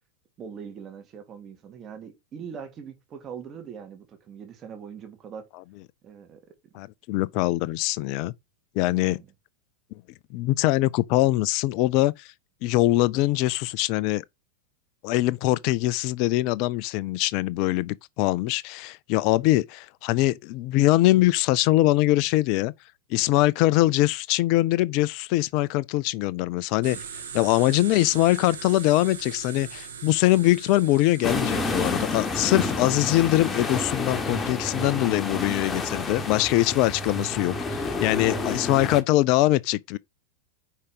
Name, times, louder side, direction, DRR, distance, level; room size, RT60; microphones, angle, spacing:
voice 1, 0.4-5.5 6.0-6.4 8.9-9.3 26.9-27.1, right 7 dB, 30° right, 1.8 m, -41 dB
voice 2, 6.7-8.3 8.8-9.2 10.3-12.3 12.6-14.2 15.0-22.7 23.1-27.0 27.3-40.0, left 17 dB, 45° left, 0.5 m, -23 dB
sound 1, 26.8-33.7, right 6 dB, 65° right, 1.8 m, -41 dB
sound 2, 31.2-39.0, left 3 dB, 15° left, 1.3 m, -29 dB
5.4 x 5.0 x 6.1 m
figure-of-eight pair, 90°, 0 cm